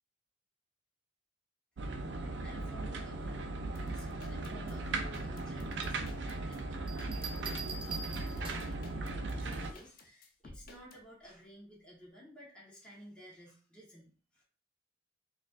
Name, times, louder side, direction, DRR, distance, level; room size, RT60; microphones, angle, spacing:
sound 1, 1.8-9.7, right 2 dB, 75° right, 0.4 m, -38 dB
voice 1, 2.4-14.4, equal, 5° left, -7 dB, 1.1 m, -55 dB
sound 2, 3.7-11.0, left 2 dB, 55° left, 0.6 m, -53 dB
sound 3, 6.9-8.8 10.4-10.8, right 5 dB, 30° right, 0.6 m, -43 dB
4.2 x 2.5 x 2.4 m, 0.40 s
head